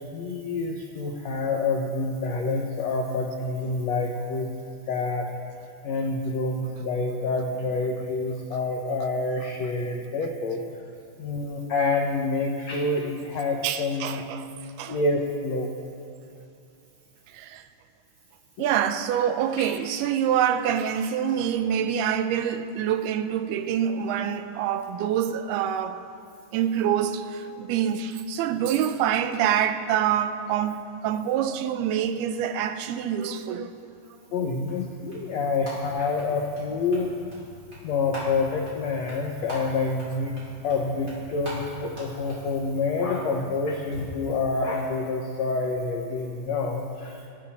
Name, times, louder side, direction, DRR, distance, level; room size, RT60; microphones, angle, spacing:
voice 1, 0.1-4.5 4.9-5.3 5.8-10.6 11.2-14.2 14.9-15.7 18.6-18.7 19.6-19.7 34.3-37.1 37.8-40.3 40.6-47.3, left 3 dB, 85° left, 1.5 m, -27 dB
voice 2, 13.6-14.5 14.8-15.0 17.3-17.7 18.6-26.0 26.5-33.9, right 9 dB, 80° right, 2.6 m, -26 dB
sound 1, 34.3-44.0, left 1 dB, 25° right, 5.1 m, -42 dB
26.0 x 13.0 x 4.3 m
omnidirectional pair, 4.7 m